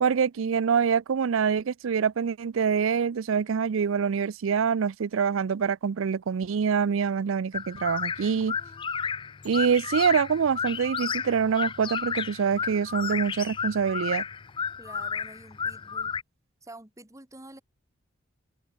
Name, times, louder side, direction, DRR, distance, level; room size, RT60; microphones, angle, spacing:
voice 1, 0.0-8.6 9.4-14.2, right 6 dB, 80° right, 0.4 m, -25 dB
sound 1, 7.5-16.2, left 6 dB, 25° left, 0.3 m, -32 dB
voice 2, 14.8-16.1 16.6-17.6, right 2 dB, 15° right, 2.5 m, -48 dB
head